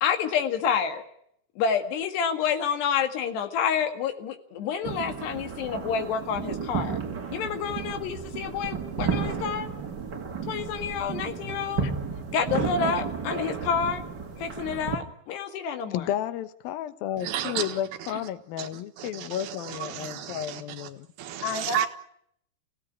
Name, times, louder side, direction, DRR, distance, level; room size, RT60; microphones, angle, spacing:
voice 1, 0.0-1.0 1.6-7.0 7.3-9.7 10.5-11.9 12.3-14.0 14.4-16.1 21.4-21.9, left 7 dB, 90° left, 6 dB, 4.1 m, -28 dB
sound 1, 4.8-15.0, right 5 dB, 40° right, 1.7 m, -33 dB
voice 2, 15.9-21.1, left 11 dB, 70° left, 12 dB, 2.7 m, -32 dB
voice 3, 17.2-17.8 18.6-18.7 19.0-20.9 21.2-21.9, right 10 dB, 70° right, 8 dB, 3.3 m, -32 dB
26.5 x 16.5 x 9.8 m, 0.72 s
omnidirectional pair, 4.7 m